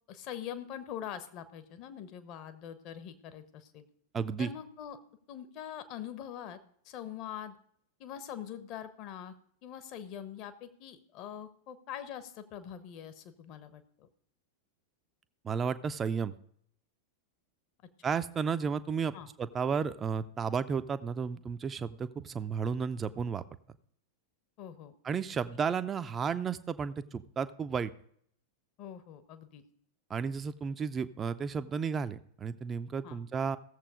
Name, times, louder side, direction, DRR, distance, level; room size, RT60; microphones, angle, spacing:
voice 1, 0.1-3.9 4.4-5.0 5.3-6.6 6.8-7.5 8.0-9.3 9.6-14.1 18.5-18.6 19.1-19.3 24.6-25.0 28.8-29.6 33.0-33.2, left 9 dB, 40° left, 10 dB, 1.2 m, -43 dB
voice 2, 4.1-4.5 15.4-16.3 18.0-23.4 25.0-27.9 30.1-33.6, right 6 dB, 20° right, 12 dB, 0.6 m, -33 dB
16.0 x 7.4 x 5.0 m, 0.66 s
figure-of-eight pair, 90°, 0 cm